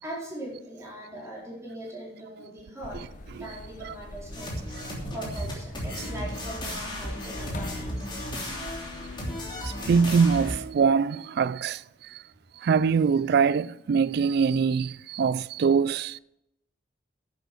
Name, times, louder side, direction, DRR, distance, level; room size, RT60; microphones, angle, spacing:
voice 1, 0.0-3.0 3.4-4.5 5.1-7.9, right 1 dB, 15° right, 4.6 m, -40 dB
sound 1, 2.8-10.6, left 2 dB, 45° left, 0.9 m, -42 dB
sound 2, 4.3-10.6, left 1 dB, 25° left, 3.1 m, -35 dB
voice 2, 9.6-11.8 12.6-16.2, right 6 dB, 60° right, 0.3 m, -23 dB
10.5 x 8.2 x 6.2 m
head